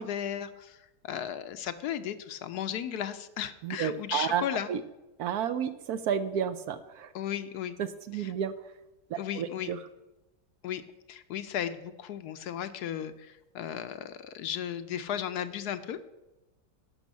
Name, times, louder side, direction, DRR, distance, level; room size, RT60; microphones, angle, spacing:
voice 1, 0.0-4.7 7.1-7.8 8.1-8.3 9.2-9.7 10.6-10.8 11.1-16.0, left 10 dB, 70° left, 11 dB, 1.1 m, -35 dB
voice 2, 3.6-4.4 4.7-4.8 5.2-7.1 7.8-8.5 9.1-9.8, right 8 dB, 70° right, 12 dB, 1.0 m, -31 dB
11.5 x 5.6 x 7.3 m, 0.99 s
omnidirectional pair, 1.9 m